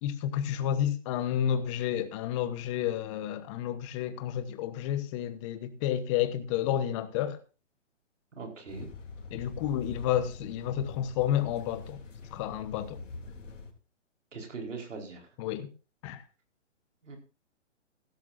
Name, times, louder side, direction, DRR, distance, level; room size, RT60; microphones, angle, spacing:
voice 1, 0.0-7.4 9.3-12.0 12.3-13.0 15.4-15.7 16.0-16.2, left 10 dB, 25° left, 1.1 m, -30 dB
voice 2, 8.4-8.9 14.3-15.3 17.0-17.2, right 4 dB, 75° right, 4.5 m, -40 dB
sound 1, 8.7-13.7, left 4 dB, 75° left, 3.1 m, -44 dB
15.5 x 13.0 x 2.6 m
hypercardioid pair, 145°, 37 cm